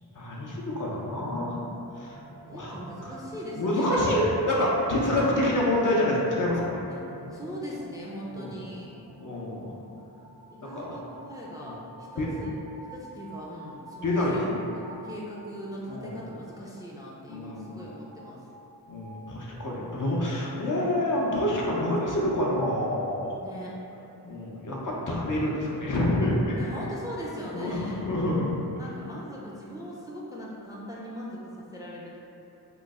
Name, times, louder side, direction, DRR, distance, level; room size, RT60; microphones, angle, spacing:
voice 1, 0.1-1.6 2.0-2.2 2.4-2.8 3.0-3.2 3.6-6.8 8.3-8.5 9.2-9.7 10.6-10.9 11.6-11.7 12.2-12.3 14.0-14.6 15.9-16.2 17.3-17.8 18.9-23.3 24.2-26.6 27.5-28.6, left 1 dB, 50° left, -4 dB, 0.6 m, -27 dB
sound 1, 0.5-19.2, right 3 dB, 80° right, 0.6 m, -48 dB
voice 2, 2.5-4.0 6.9-7.0 7.3-9.0 10.5-12.6 12.9-14.5 14.8-18.5 23.4-23.7 26.6-28.0 28.6-32.2, equal, 10° right, -6 dB, 0.3 m, -40 dB
3.0 x 2.0 x 3.5 m, 2.9 s
wide cardioid pair, 60°, 40 cm